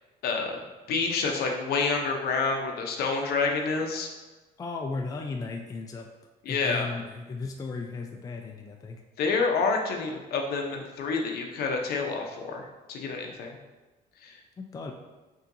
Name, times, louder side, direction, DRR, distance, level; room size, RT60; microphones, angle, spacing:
voice 1, 0.2-0.6 0.9-4.1 6.4-6.9 9.2-13.6 14.2-14.3, left 4 dB, 65° left, 2 dB, 0.7 m, -28 dB
voice 2, 4.6-6.1 6.5-9.0 14.6-14.9, left 4 dB, 20° left, 2 dB, 0.4 m, -35 dB
5.4 x 2.8 x 2.6 m, 1.2 s
cardioid pair, 110°, 17 cm